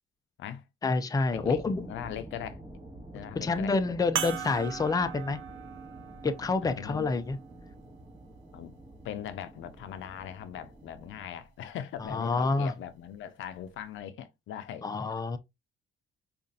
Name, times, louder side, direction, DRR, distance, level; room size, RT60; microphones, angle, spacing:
voice 1, 0.8-1.9 3.3-5.4 6.2-7.4 12.0-12.7 14.8-15.4, left 3 dB, 20° left, 0.5 m, -28 dB
sound 1, 1.3-11.3, right 1 dB, 25° right, 2.3 m, -48 dB
voice 2, 1.9-2.6 3.1-3.7 6.6-7.1 8.5-8.7 9.0-14.9, left 10 dB, 75° left, 0.5 m, -40 dB
sound 2, 4.2-9.0 9.7-9.8 12.0-12.1, right 9 dB, 75° right, 0.6 m, -39 dB
4.9 x 2.5 x 2.7 m
cardioid pair, 90°, 20 cm